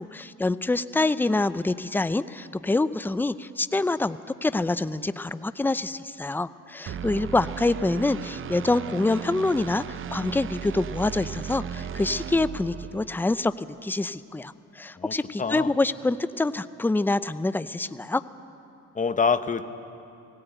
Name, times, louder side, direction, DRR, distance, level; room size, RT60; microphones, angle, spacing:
voice 1, 0.0-18.2, left 2 dB, 5° left, 14 dB, 0.5 m, -26 dB
sound 1, 6.9-13.3, right 8 dB, 45° right, 0.5 m, -36 dB
voice 2, 15.0-15.7 18.9-19.7, left 5 dB, 25° left, 11 dB, 0.9 m, -26 dB
18.0 x 17.0 x 8.9 m, 2.7 s
cardioid pair, 90°, 30 cm